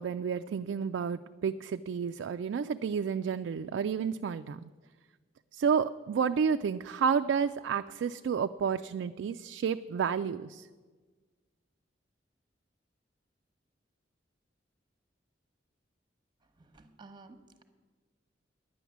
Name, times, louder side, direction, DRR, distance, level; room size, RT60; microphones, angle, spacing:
voice 1, 0.0-4.7 5.5-10.7, right 6 dB, 80° right, 8 dB, 0.3 m, -30 dB
voice 2, 16.6-17.6, right 3 dB, 25° right, 8 dB, 0.9 m, -53 dB
10.0 x 9.2 x 7.2 m, 1.4 s
head